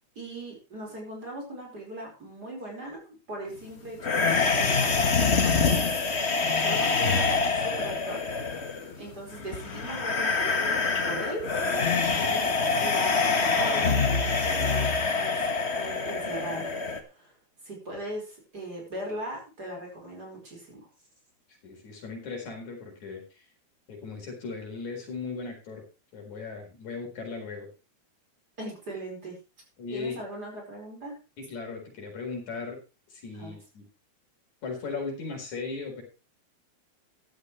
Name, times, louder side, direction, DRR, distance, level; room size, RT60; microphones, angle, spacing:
voice 1, 0.2-5.8 6.6-8.2 8.5-8.7 9.0-11.5 12.2-14.9 15.2-15.4 15.7-16.7 17.1-17.3 17.6-20.9 28.6-29.4 29.9-31.2 33.3-33.6, right 1 dB, 30° right, 0 dB, 5.5 m, -39 dB
sound 1, 4.0-17.0, left 4 dB, 40° left, 0.9 m, -25 dB
voice 2, 21.6-23.4 23.9-25.8 26.1-27.7 29.8-30.2 31.4-32.8 33.1-33.9 34.6-36.0, left 4 dB, 70° left, 1 dB, 5.7 m, -37 dB
15.0 x 11.5 x 3.2 m, 0.31 s
omnidirectional pair, 3.4 m